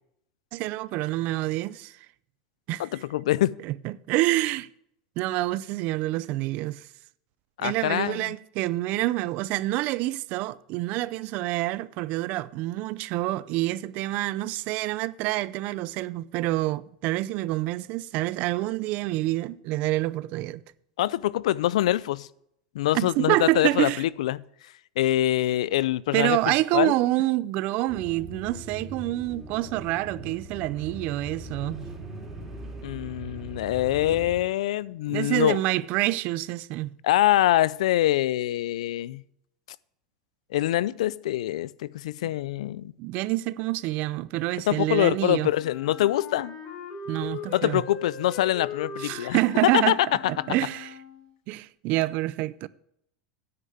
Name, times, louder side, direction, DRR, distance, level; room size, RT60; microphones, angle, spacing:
voice 1, 0.5-2.0 2.7-2.9 3.6-4.7 5.2-6.9 7.6-20.6 22.9-24.0 26.1-31.9 35.1-36.9 43.0-45.5 47.1-47.8 49.0-50.0 50.3-50.9 51.5-52.7, right 17 dB, 50° right, 0.5 m, -27 dB
voice 2, 2.8-3.6 7.6-8.3 21.0-22.3 22.7-24.4 25.0-26.4 26.7-26.9 32.8-35.6 37.0-39.2 40.5-42.9 44.7-46.6 47.5-49.9 50.4-50.5, left 14 dB, 85° left, 0.4 m, -24 dB
sound 1, 27.9-34.4, right 2 dB, 10° right, 3.2 m, -40 dB
Wind instrument woodwind instrument, 45.6-51.4, left 5 dB, 45° left, 3.9 m, -40 dB
9.5 x 5.6 x 7.9 m
supercardioid pair, 130°, 3 cm